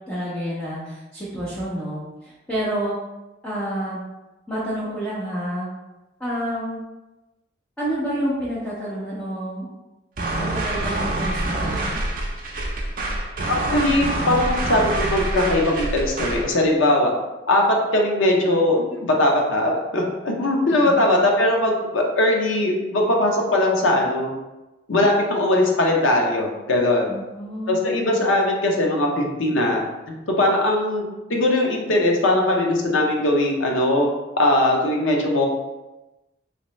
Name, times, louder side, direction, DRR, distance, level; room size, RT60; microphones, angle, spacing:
voice 1, 0.1-2.9 3.4-4.0 4.5-5.7 6.2-6.8 7.8-9.7 10.4-12.0 20.8-21.0 27.0-27.8, equal, 5° left, -9 dB, 0.5 m, -29 dB
sound 1, 10.2-16.5, right 2 dB, 45° right, 0.5 m, -26 dB
voice 2, 13.5-17.1 17.5-24.3 24.9-27.1 27.7-29.8 30.1-31.0 31.3-34.1 34.4-35.5, left 1 dB, 90° left, 0 dB, 0.6 m, -20 dB
3.0 x 2.8 x 3.1 m, 1.1 s
head